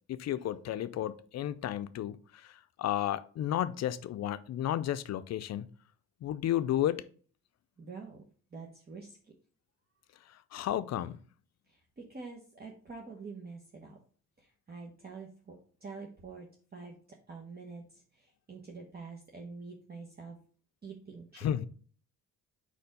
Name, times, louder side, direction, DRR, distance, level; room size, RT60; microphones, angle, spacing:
voice 1, 0.1-5.7 6.2-7.0 10.3-11.2 21.4-21.7, left 11 dB, 60° left, 0.5 m, -33 dB
voice 2, 7.8-8.2 8.5-9.2 11.7-14.0 14.4-16.5 16.7-16.9 17.3-20.3 20.8-21.5, right 4 dB, 30° right, 1.1 m, -46 dB
5.0 x 4.3 x 5.2 m
cardioid pair, 90°, 30 cm